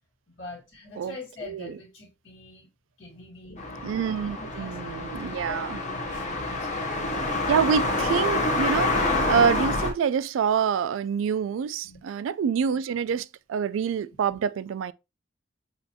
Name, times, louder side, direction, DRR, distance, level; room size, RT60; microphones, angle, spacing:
voice 1, 0.3-2.7 3.0-3.6 4.0-4.8 5.4-6.7 11.8-12.0, left 3 dB, 65° left, 1.8 m, -44 dB
voice 2, 1.4-1.7 3.8-5.8 7.5-14.9, right 7 dB, 85° right, 0.3 m, -26 dB
sound 1, 3.6-9.9, left 2 dB, 35° left, 1.0 m, -27 dB
6.5 x 2.5 x 2.7 m
head